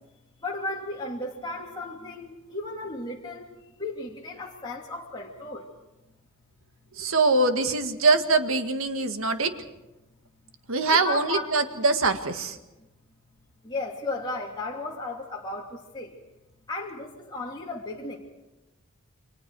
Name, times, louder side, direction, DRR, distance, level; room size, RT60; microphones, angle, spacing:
voice 1, 0.4-3.4 3.8-5.6 10.9-11.5 13.6-15.7 15.9-16.1 16.7-18.2, left 2 dB, 20° left, -3 dB, 2.6 m, -34 dB
voice 2, 7.0-9.5 10.7-12.6, right 3 dB, 70° right, 7 dB, 1.8 m, -23 dB
29.5 x 24.0 x 4.7 m, 1.0 s
head